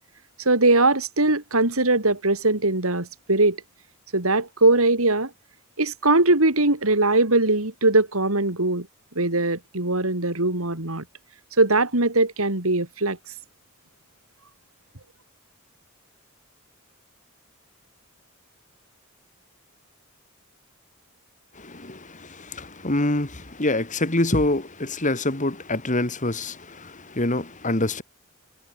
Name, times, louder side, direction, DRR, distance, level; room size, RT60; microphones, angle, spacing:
voice 1, 0.4-3.6 4.1-5.3 5.8-8.9 9.2-11.0 11.6-13.2, right 2 dB, 80° right, 4.3 m, -21 dB
voice 2, 21.5-28.0, left 2 dB, 35° left, 2.9 m, -26 dB
head